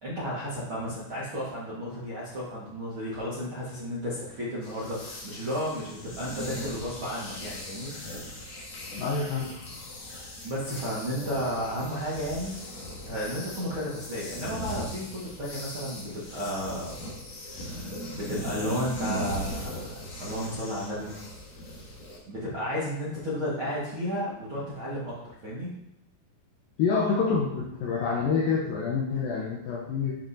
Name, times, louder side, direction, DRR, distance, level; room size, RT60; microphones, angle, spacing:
voice 1, 0.0-7.9 10.4-12.5 13.1-17.0 17.6-21.1 22.2-25.2 25.4-25.7, equal, 60° right, -9 dB, 1.3 m, -33 dB
sound 1, 4.6-22.2, equal, 65° left, 1.7 m, -39 dB
voice 2, 8.9-9.5 26.8-30.2, left 5 dB, 85° left, -2 dB, 2.0 m, -27 dB
10.0 x 6.3 x 2.7 m, 0.83 s
omnidirectional pair, 5.2 m